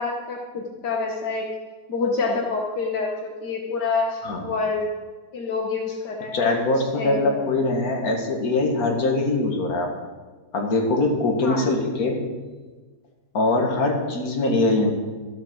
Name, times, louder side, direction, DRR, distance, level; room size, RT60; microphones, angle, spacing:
voice 1, 0.0-1.5 1.9-4.8 5.3-6.5 7.0-7.5 11.4-11.6, left 4 dB, 80° left, 0 dB, 1.7 m, -27 dB
voice 2, 6.3-9.9 10.5-12.2 13.3-14.9, left 2 dB, 60° left, 1 dB, 2.2 m, -22 dB
13.0 x 8.1 x 6.2 m, 1.3 s
omnidirectional pair, 1.8 m